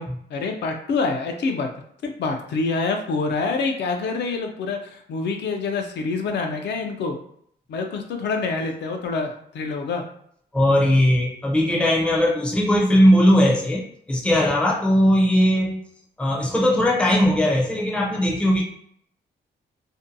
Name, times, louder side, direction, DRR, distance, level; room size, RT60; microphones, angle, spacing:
voice 1, 0.0-1.7 2.2-7.2 7.7-10.0, left 4 dB, 75° left, 4 dB, 0.4 m, -26 dB
voice 2, 10.5-15.8 16.2-18.6, equal, 5° left, -2 dB, 0.4 m, -19 dB
2.6 x 2.2 x 2.6 m, 0.67 s
wide cardioid pair, 180°, 18 cm